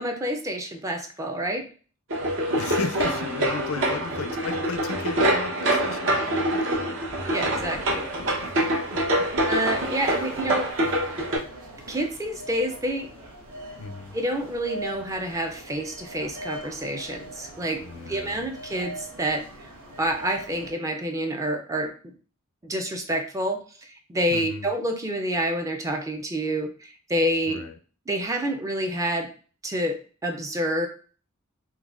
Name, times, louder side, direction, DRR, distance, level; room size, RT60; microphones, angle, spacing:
voice 1, 0.0-1.7 2.6-2.7 7.3-8.1 9.5-10.7 11.9-13.1 14.1-19.7 20.0-22.1 22.6-27.7 28.1-29.3 29.6-30.9, right 1 dB, 15° right, 5 dB, 0.4 m, -28 dB
sound 1, 2.1-11.4, right 1 dB, 60° right, 0.9 m, -25 dB
voice 2, 2.6-7.4 8.6-9.3 10.1-10.2 13.8-14.2 17.8-18.5 24.3-24.7 27.5-27.7, left 4 dB, 70° left, 8 dB, 0.4 m, -35 dB
sound 2, 7.7-20.7, right 1 dB, 85° right, 1.1 m, -42 dB
3.9 x 2.9 x 2.4 m, 0.39 s
head